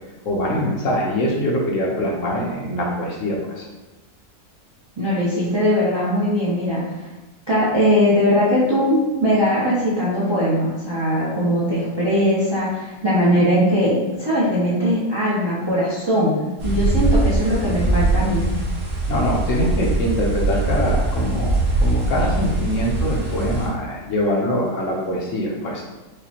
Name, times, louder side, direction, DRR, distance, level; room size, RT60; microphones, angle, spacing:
voice 1, 0.2-3.6 19.1-25.8, equal, 65° left, -2 dB, 0.9 m, -23 dB
voice 2, 5.0-6.8 7.5-16.3 16.6-18.4, equal, 35° right, -10 dB, 0.4 m, -20 dB
sound 1, 16.6-23.7, right 2 dB, 55° right, 1.3 m, -22 dB
4.8 x 2.1 x 2.8 m, 1.1 s
omnidirectional pair, 1.6 m